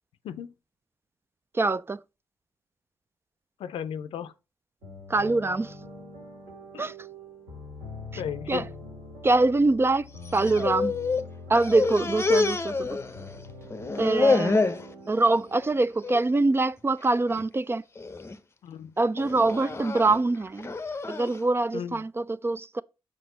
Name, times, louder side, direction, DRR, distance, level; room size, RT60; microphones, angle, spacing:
voice 1, 1.5-2.0 5.1-5.7 6.8-6.9 8.1-8.2 8.5-8.7 9.2-10.9 11.5-13.0 14.0-14.7 15.1-17.8 19.0-20.7 21.1-22.8, right 3 dB, 25° right, 0.4 m, -24 dB
voice 2, 3.6-4.3 6.7-6.8 8.2-8.7 18.6-18.9 21.7-22.0, left 8 dB, 75° left, 0.5 m, -35 dB
sound 1, 4.8-16.5, left 2 dB, 90° right, 2.4 m, -44 dB
sound 2, 10.2-11.3 11.5-13.4 13.7-14.9 15.3-15.7 16.0-16.2 17.0-17.4 18.0-18.4 19.2-21.4, left 3 dB, 25° left, 0.7 m, -27 dB
6.0 x 4.6 x 4.0 m
supercardioid pair, 45°, 9 cm